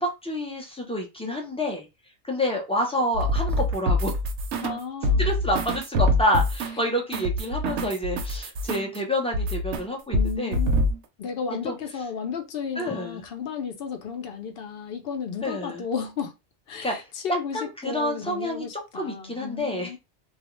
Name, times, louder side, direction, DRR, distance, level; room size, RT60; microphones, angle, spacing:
voice 1, 0.0-1.9 2.2-4.1 5.2-10.6 11.6-11.8 12.8-13.2 15.4-15.8 16.8-16.9 17.5-18.7 18.9-19.9, left 1 dB, 10° left, 0.3 m, -28 dB
sound 1, 3.1-4.8 5.0-9.0 9.3-9.8 10.1-11.0, left 1 dB, 80° right, 0.9 m, -25 dB
voice 2, 4.6-5.3 10.1-10.7 11.2-16.3 16.7-20.0, left 6 dB, 65° left, 0.7 m, -33 dB
2.3 x 2.1 x 2.9 m
omnidirectional pair, 1.2 m